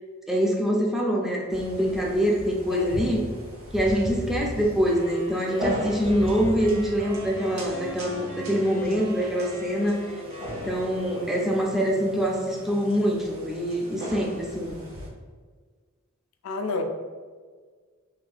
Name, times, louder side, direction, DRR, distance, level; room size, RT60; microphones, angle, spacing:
voice 1, 0.3-3.2 3.7-10.0 10.6-14.8, equal, ahead, -2 dB, 0.4 m, -25 dB
sound 1, 1.5-15.1, equal, 70° right, 0.8 m, -37 dB
voice 2, 2.7-3.0 10.9-11.5 16.4-16.8, left 3 dB, 75° left, 5 dB, 0.4 m, -31 dB
sound 2, 4.9-11.9, right 1 dB, 40° right, 0.9 m, -41 dB
3.3 x 2.6 x 2.3 m, 1.5 s
head